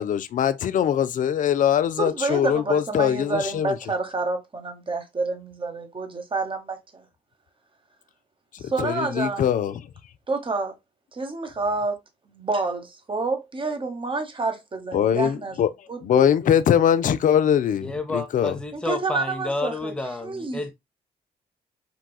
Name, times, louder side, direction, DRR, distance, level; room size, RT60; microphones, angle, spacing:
voice 1, 0.0-3.8 8.8-9.7 14.9-15.7 16.0-18.6, left 9 dB, 50° left, 0.4 m, -22 dB
voice 2, 2.0-7.0 8.6-9.5 10.3-10.8 11.1-12.0 12.3-15.6 15.9-16.2 18.7-19.9 20.2-20.7, right 3 dB, 30° right, 1.0 m, -28 dB
voice 3, 17.8-20.7, left 2 dB, 5° left, 0.7 m, -30 dB
4.0 x 2.3 x 2.2 m
hypercardioid pair, 45°, 18 cm